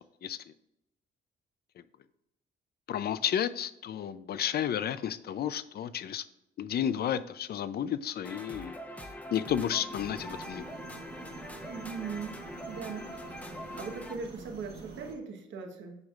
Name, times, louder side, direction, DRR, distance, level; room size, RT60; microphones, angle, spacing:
voice 1, 2.9-6.2 6.6-8.7 9.3-10.7, left 9 dB, 50° left, 15 dB, 0.5 m, -32 dB
sound 1, 8.2-14.2, left 1 dB, 5° left, 0.9 m, -43 dB
sound 2, 9.9-15.1, right 4 dB, 55° right, 1.6 m, -47 dB
voice 2, 11.7-12.4 12.7-13.1 13.6-16.0, right 5 dB, 70° right, 2 dB, 1.3 m, -39 dB
7.9 x 5.5 x 2.5 m, 0.86 s
cardioid pair, 90°, 20 cm